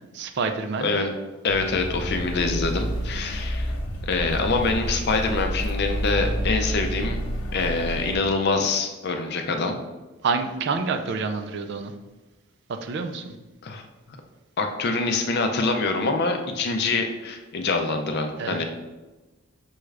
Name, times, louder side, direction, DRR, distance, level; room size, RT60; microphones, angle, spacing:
voice 1, 0.1-0.9 10.2-11.9 12.7-13.3 18.4-18.6, right 4 dB, 55° right, 7 dB, 0.4 m, -28 dB
voice 2, 1.4-3.7 4.0-7.2 7.5-9.8 13.6-13.8 14.6-18.6, left 3 dB, 50° left, 5 dB, 0.5 m, -25 dB
sound 1, 1.5-8.2, equal, 80° left, 0.8 m, -29 dB
6.0 x 2.4 x 3.2 m, 1.2 s
head